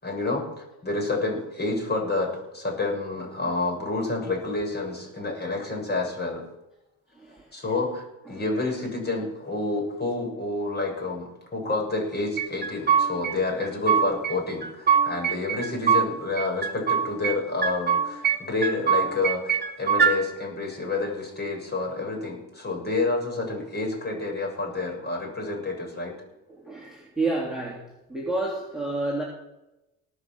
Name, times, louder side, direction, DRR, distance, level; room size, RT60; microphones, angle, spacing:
voice 1, 0.0-6.4 7.5-26.1, left 3 dB, 25° left, 0 dB, 6.5 m, -29 dB
voice 2, 7.2-7.5 8.3-8.4 26.5-27.8 28.1-29.2, right 2 dB, ahead, -4 dB, 3.4 m, -30 dB
sound 1, 12.4-13.3 13.6-14.3 14.6-16.1 16.4-17.4 17.6-18.4 18.6-20.1, right 7 dB, 25° right, 2.3 m, -23 dB
19.0 x 6.4 x 7.0 m, 0.93 s
supercardioid pair, 90°, 42 cm